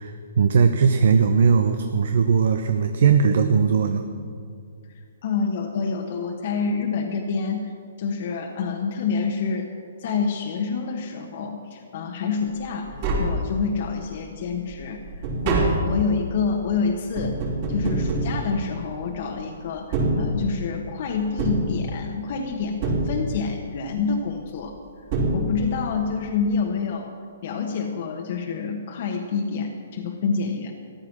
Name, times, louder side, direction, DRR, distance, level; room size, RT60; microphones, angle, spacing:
voice 1, 0.0-4.1, right 6 dB, 65° right, 7 dB, 0.8 m, -19 dB
voice 2, 4.9-7.7 8.0-9.7 10.0-15.0 15.4-17.4 17.7-24.8 25.3-27.1 27.4-30.7, left 5 dB, 55° left, 2 dB, 1.2 m, -27 dB
Tap, 12.6-12.7 12.9-14.0 14.4-19.2 19.8-20.8 21.4-22.4 22.8-23.7 24.7-24.8 25.1-25.9 26.2-26.3, right 2 dB, 45° right, 4.1 m, -26 dB
14.5 x 11.5 x 6.0 m, 2.3 s
hypercardioid pair, 135°, 0 cm